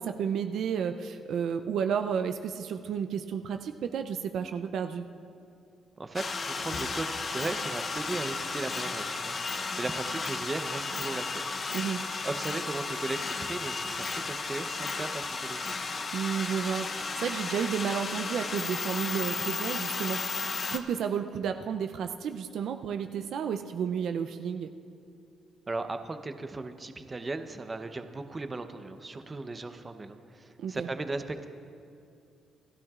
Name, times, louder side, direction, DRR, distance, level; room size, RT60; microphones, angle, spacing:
voice 1, 0.0-5.1 11.7-12.0 16.1-24.7 30.6-30.9, right 7 dB, 70° right, 7 dB, 0.5 m, -32 dB
voice 2, 6.0-9.4 9.8-11.5 12.2-15.8 25.7-31.5, right 3 dB, 25° right, 8 dB, 0.8 m, -37 dB
sound 1, 6.1-20.8, left 4 dB, 40° left, 0.7 m, -34 dB
28.5 x 12.0 x 2.5 m, 2.5 s
cardioid pair, 90°, 0 cm